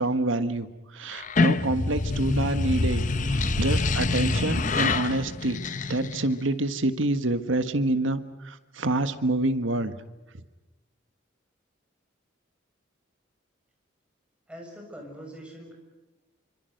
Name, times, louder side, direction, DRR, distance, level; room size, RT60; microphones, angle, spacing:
voice 1, 0.0-5.6 5.9-9.9, right 2 dB, 75° right, 10 dB, 1.5 m, -27 dB
sound 1, 1.1-6.4, left 3 dB, 40° left, 0.9 m, -26 dB
voice 2, 14.5-15.8, equal, 5° right, 0 dB, 6.8 m, -43 dB
27.0 x 26.0 x 6.6 m, 1.1 s
head